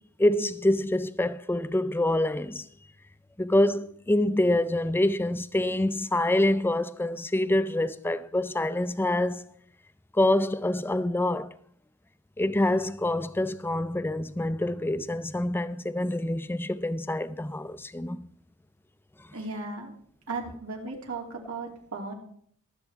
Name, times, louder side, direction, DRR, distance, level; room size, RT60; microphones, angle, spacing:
voice 1, 0.2-2.7 3.4-9.4 10.1-11.5 12.4-18.2, left 1 dB, 10° left, 0.5 m, -26 dB
voice 2, 19.3-19.9 20.3-22.1, right 3 dB, 85° right, 2.8 m, -36 dB
23.0 x 8.2 x 3.5 m
head